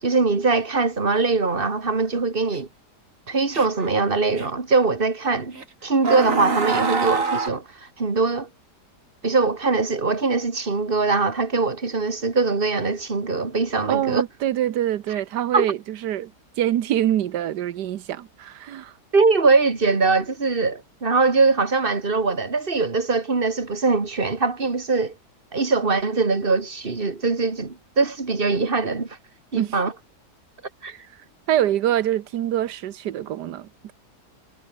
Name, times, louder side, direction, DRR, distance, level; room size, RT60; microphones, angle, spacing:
voice 1, 0.0-2.7 3.3-5.6 5.8-8.5 9.2-14.2 15.5-15.7 19.1-25.1 25.5-29.2 29.5-29.9 30.8-30.9, right 4 dB, 35° right, 2.6 m, -22 dB
sound 1, 2.5-2.6 3.5-3.9 4.4-4.5 5.5-5.6 6.0-7.5, right 4 dB, 50° right, 2.9 m, -25 dB
voice 2, 13.9-16.3 16.6-18.9 29.5-29.7 30.9-31.0 31.5-33.9, right 11 dB, 90° right, 1.5 m, -25 dB
omnidirectional pair, 1.7 m